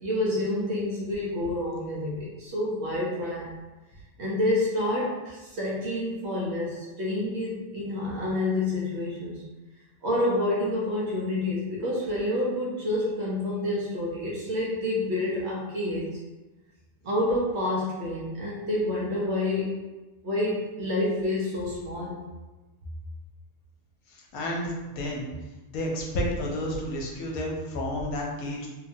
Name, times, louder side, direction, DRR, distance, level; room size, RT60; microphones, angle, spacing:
voice 1, 0.0-3.5 4.2-9.4 10.0-16.2 17.0-19.8 20.2-22.2, left 1 dB, 60° right, -5 dB, 0.8 m, -28 dB
voice 2, 24.1-25.3 25.7-28.7, left 1 dB, 80° left, -1 dB, 1.1 m, -31 dB
2.8 x 2.2 x 2.6 m, 1.1 s
omnidirectional pair, 1.5 m